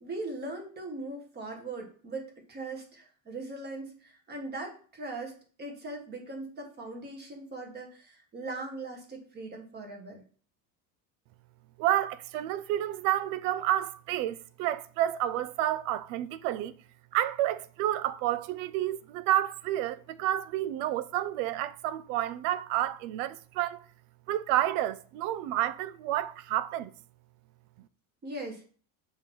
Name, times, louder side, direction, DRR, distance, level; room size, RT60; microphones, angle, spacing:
voice 1, 0.0-10.2 28.2-28.7, right 2 dB, 25° right, 1.5 m, -40 dB
voice 2, 11.8-16.7 17.1-23.8 24.3-26.9, right 13 dB, 75° right, 0.6 m, -30 dB
6.4 x 3.0 x 5.4 m
cardioid pair, 155°, 39 cm